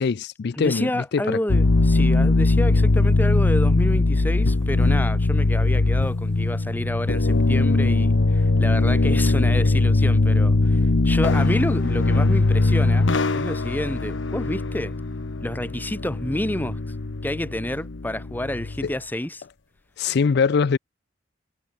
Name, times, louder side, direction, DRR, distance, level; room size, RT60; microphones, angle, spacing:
voice 1, 0.0-1.4 11.2-11.3 18.8-18.9 20.0-20.8, left 5 dB, 60° left, 0.4 m, -22 dB
voice 2, 0.5-14.9 15.4-16.8 17.2-19.4, left 1 dB, 10° left, 1.0 m, -29 dB
sound 1, 1.5-18.9, left 2 dB, 80° left, 0.9 m, -20 dB
head